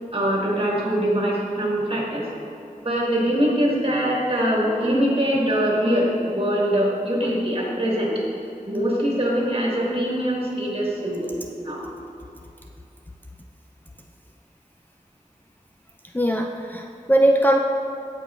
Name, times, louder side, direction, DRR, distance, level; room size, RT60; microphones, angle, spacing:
voice 1, 0.1-2.3 2.8-8.1 8.7-11.8, equal, 45° right, -4 dB, 1.8 m, -23 dB
voice 2, 16.1-17.6, right 1 dB, 15° left, 1 dB, 0.4 m, -20 dB
14.5 x 4.9 x 2.5 m, 2.7 s
wide cardioid pair, 50°, 13 cm